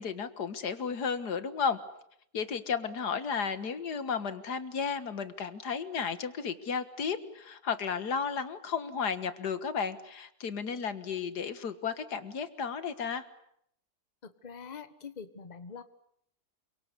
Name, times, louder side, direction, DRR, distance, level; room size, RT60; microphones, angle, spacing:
voice 1, 0.0-1.8 2.3-13.2, left 6 dB, 85° left, 11 dB, 2.1 m, -33 dB
voice 2, 14.2-15.8, left 6 dB, 30° left, 11 dB, 1.4 m, -44 dB
28.0 x 24.5 x 8.3 m, 0.73 s
omnidirectional pair, 1.7 m